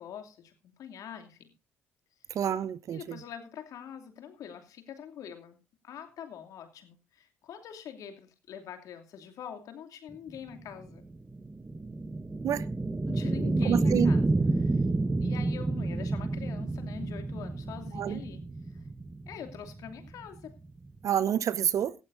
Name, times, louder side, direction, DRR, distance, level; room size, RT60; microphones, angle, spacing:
voice 1, 0.0-1.5 2.9-5.6 5.8-11.0 13.0-14.2 14.6-14.9 15.2-18.4 19.3-20.6, left 8 dB, 65° left, 2.7 m, -44 dB
voice 2, 2.3-3.2 12.4-12.7 13.6-14.1 17.9-18.2 21.0-21.9, right 9 dB, 55° right, 0.9 m, -28 dB
sound 1, 10.3-21.0, right 2 dB, 20° right, 1.2 m, -30 dB
17.0 x 15.0 x 2.6 m
hypercardioid pair, 50°, 6 cm